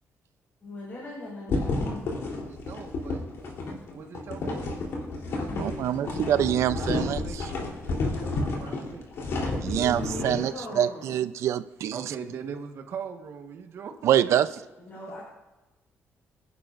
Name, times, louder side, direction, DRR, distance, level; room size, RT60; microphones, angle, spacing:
voice 1, 0.6-2.1 5.5-6.0 9.6-11.3 14.8-15.2, left 1 dB, 35° left, -6 dB, 5.3 m, -39 dB
sound 1, 1.5-10.4, left 2 dB, 60° left, 3.5 m, -31 dB
voice 2, 2.5-3.3 3.9-4.8 6.6-9.0 11.9-14.3, right 6 dB, 60° right, 4 dB, 1.5 m, -41 dB
voice 3, 5.6-7.5 9.6-12.0 14.0-14.5, right 11 dB, 75° right, 13 dB, 0.6 m, -25 dB
26.5 x 11.0 x 2.6 m, 1.1 s
cardioid pair, 150°, 5 cm